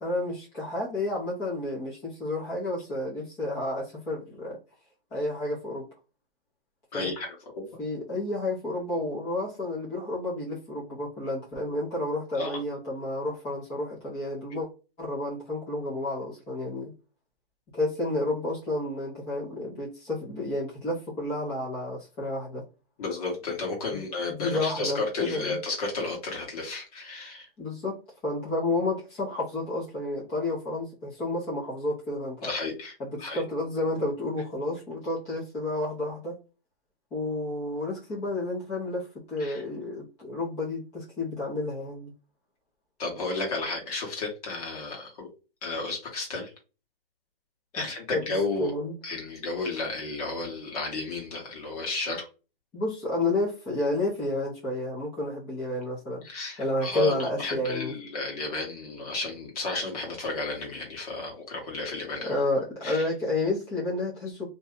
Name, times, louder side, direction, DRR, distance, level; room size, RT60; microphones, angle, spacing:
voice 1, 0.0-4.6 5.1-5.8 6.9-7.1 7.8-14.7 15.0-16.9 17.7-22.7 23.9-25.6 27.6-28.0 28.2-32.5 33.0-36.3 37.1-42.1 47.8-47.9 48.1-48.2 48.6-49.0 52.7-56.2 56.6-58.0 62.2-64.5, left 2 dB, 10° left, -7 dB, 0.6 m, -31 dB
voice 2, 6.9-7.7 12.4-12.6 23.0-27.5 32.4-32.9 33.2-33.4 39.4-39.6 43.0-45.3 45.6-46.5 47.7-48.7 49.0-52.2 56.2-62.4 62.8-63.1, left 3 dB, 40° left, 0 dB, 1.3 m, -32 dB
2.7 x 2.2 x 3.6 m, 0.32 s
hypercardioid pair, 150°, 29 cm